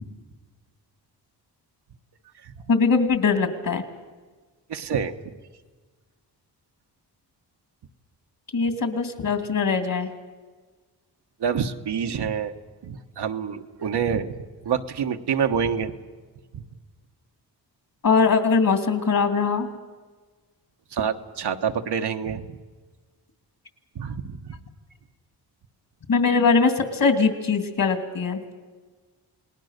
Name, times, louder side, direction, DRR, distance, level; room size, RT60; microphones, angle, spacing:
voice 1, 2.7-3.8 8.5-10.1 18.0-19.7 26.1-28.4, left 5 dB, 55° left, 7 dB, 2.9 m, -21 dB
voice 2, 4.7-5.1 11.4-12.5 12.8-14.4 14.6-15.9 16.5-16.6 20.9-22.6 23.9-24.5, right 7 dB, 75° right, 5 dB, 1.4 m, -27 dB
29.0 x 19.5 x 6.7 m, 1.4 s
cardioid pair, 85°, 41 cm